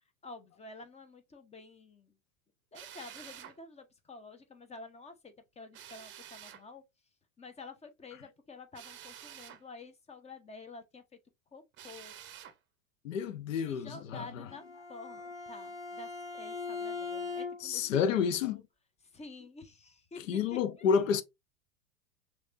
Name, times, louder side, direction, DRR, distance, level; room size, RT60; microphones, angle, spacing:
voice 1, 0.2-2.2 2.7-6.8 7.4-11.0 11.5-12.1 13.6-14.6 14.9-18.6 19.1-20.2 20.5-20.9, left 3 dB, 15° left, 0.9 m, -49 dB
Drill, 2.7-3.6 5.7-6.6 8.7-9.6 11.7-12.6, right 10 dB, 30° right, 0.8 m, -49 dB
voice 2, 13.0-14.5 17.6-18.6 20.3-21.2, left 7 dB, 65° left, 0.8 m, -30 dB
Bowed string instrument, 14.5-17.9, left 4 dB, 10° right, 1.3 m, -40 dB
6.2 x 2.9 x 2.5 m
figure-of-eight pair, 90°, 41 cm